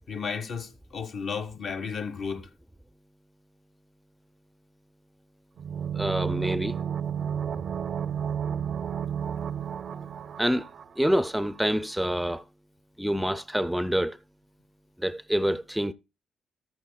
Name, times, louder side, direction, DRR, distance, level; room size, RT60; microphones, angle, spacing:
voice 1, 0.1-2.5, left 6 dB, 60° left, 1.5 m, -33 dB
sound 1, 5.6-11.3 11.5-11.6, right 8 dB, 55° right, 0.6 m, -32 dB
voice 2, 5.9-6.8 10.4-10.7 11.0-12.4 13.0-14.2 15.0-15.9, equal, 5° right, 0.6 m, -26 dB
14.0 x 13.0 x 2.3 m
cardioid pair, 90°, 0 cm